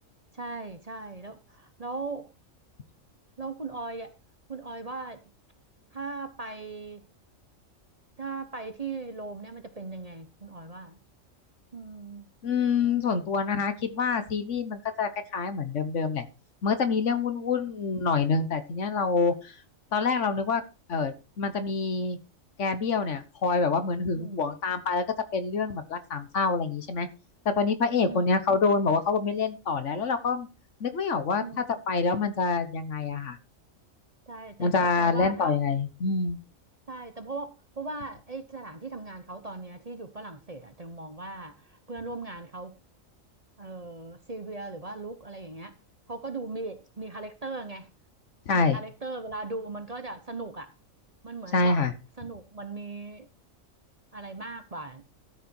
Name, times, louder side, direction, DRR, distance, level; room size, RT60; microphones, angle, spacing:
voice 1, 0.3-2.3 3.4-4.1 4.5-5.2 5.9-7.1 8.2-11.0 11.7-12.3 24.1-24.4 28.0-28.3 31.4-31.8 34.3-35.5 36.9-42.8 43.6-45.8 46.1-47.9 48.5-50.7 51.2-51.8 52.2-53.3 54.1-55.0, right 3 dB, 30° right, 0.9 m, -38 dB
voice 2, 12.4-16.2 16.6-19.5 19.9-20.6 20.9-22.2 22.6-25.0 25.3-27.1 27.4-30.5 30.8-33.4 34.6-36.4 48.5-48.8 51.5-51.9, left 4 dB, 65° left, 1.4 m, -26 dB
13.0 x 6.7 x 4.4 m
omnidirectional pair, 1.4 m